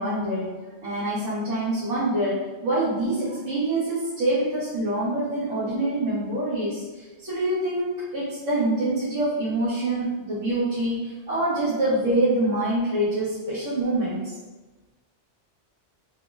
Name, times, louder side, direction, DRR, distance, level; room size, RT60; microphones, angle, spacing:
voice 1, 0.0-14.3, right 1 dB, 85° right, -12 dB, 1.3 m, -25 dB
3.5 x 2.0 x 3.4 m, 1.2 s
omnidirectional pair, 1.2 m